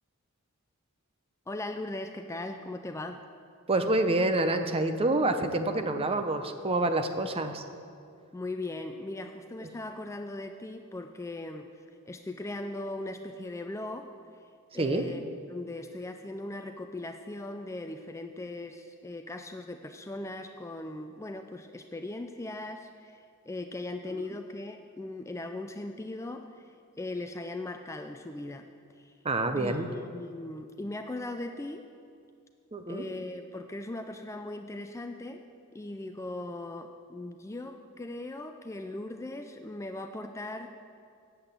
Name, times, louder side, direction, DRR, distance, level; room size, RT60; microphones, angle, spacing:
voice 1, 1.5-3.2 8.3-11.7 12.1-14.1 14.7-15.2 15.5-28.7 29.0-29.1 29.6-31.8 32.9-35.4 35.7-40.8, left 2 dB, 15° left, 6 dB, 0.4 m, -39 dB
voice 2, 3.7-7.6 14.7-15.0 24.1-24.2 29.2-29.9 32.7-33.0, right 2 dB, 25° right, 7 dB, 0.7 m, -27 dB
8.9 x 7.8 x 8.2 m, 2.3 s
head